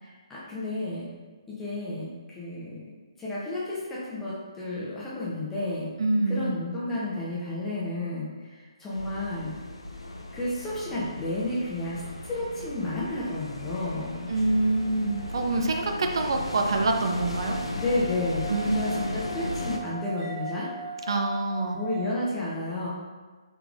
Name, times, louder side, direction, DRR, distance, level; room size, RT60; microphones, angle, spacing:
voice 1, 0.0-1.1 1.5-2.8 3.2-5.9 6.3-9.5 10.3-14.3 17.8-18.4 18.7-20.7 21.7-22.9, left 2 dB, 10° left, -8 dB, 0.7 m, -32 dB
voice 2, 6.0-6.5 14.3-17.6 18.5-18.7 21.1-21.8, right 2 dB, 55° right, 3 dB, 0.4 m, -26 dB
sound 1, 8.9-19.8, left 1 dB, 80° left, 0.5 m, -36 dB
sound 2, 13.6-22.0, right 3 dB, 10° right, 1.2 m, -41 dB
3.4 x 3.3 x 2.5 m, 1.3 s
figure-of-eight pair, 140°, 3 cm